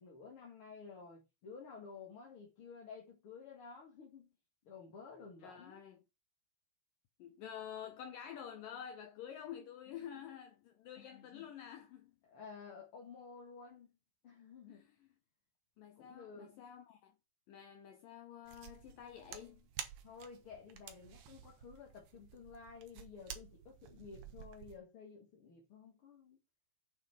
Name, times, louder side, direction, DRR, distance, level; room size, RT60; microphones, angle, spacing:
voice 1, 0.0-4.3 4.6-5.8 9.9-10.2 11.0-11.5 12.3-13.9 14.2-14.9 16.0-16.5 20.0-26.4, left 5 dB, 40° left, 2.4 m, -53 dB
voice 2, 5.4-6.0 7.2-12.2 14.7-14.9 15.8-17.1 17.5-19.7, left 9 dB, 70° left, 2.3 m, -49 dB
sound 1, 18.5-24.8, right 9 dB, 65° right, 1.7 m, -51 dB
9.9 x 6.3 x 4.6 m
omnidirectional pair, 4.8 m